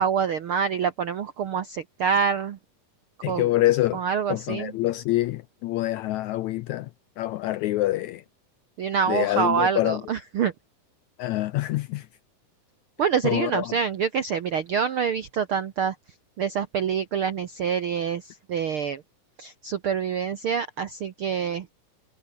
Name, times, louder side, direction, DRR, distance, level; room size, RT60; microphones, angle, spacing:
voice 1, 0.0-2.6 3.3-3.5 3.9-4.7 8.8-10.5 13.0-15.9 16.4-19.0 19.4-21.7, right 7 dB, 70° right, 1.2 m, -26 dB
voice 2, 3.2-4.0 4.3-6.9 7.2-8.2 9.1-10.0 11.2-12.1 13.2-13.7, left 16 dB, 80° left, 1.7 m, -26 dB
omnidirectional pair, 3.9 m